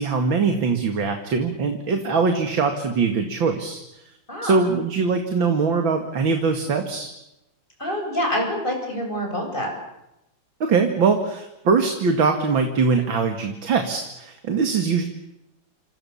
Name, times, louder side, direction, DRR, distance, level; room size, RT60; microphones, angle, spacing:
voice 1, 0.0-4.0 4.4-7.1 10.6-15.0, right 4 dB, 75° right, 5 dB, 2.9 m, -22 dB
voice 2, 7.8-9.7, equal, 25° left, 1 dB, 8.3 m, -26 dB
28.5 x 27.5 x 7.1 m, 0.88 s
omnidirectional pair, 2.2 m